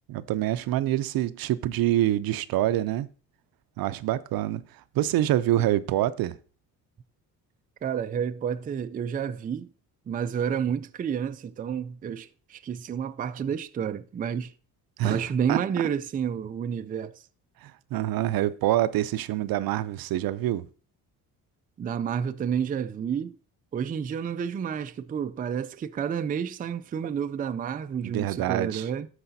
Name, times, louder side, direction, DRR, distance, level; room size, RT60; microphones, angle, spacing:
voice 1, 0.1-3.1 3.8-4.6 4.9-6.4 15.0-15.6 17.6-20.7 28.0-28.9, right 13 dB, 75° right, 0.5 m, -26 dB
voice 2, 7.8-9.7 10.1-14.5 15.0-17.2 21.8-23.4 23.7-29.1, right 7 dB, 25° right, 0.3 m, -30 dB
12.5 x 4.8 x 2.7 m
cardioid pair, 100°, 36 cm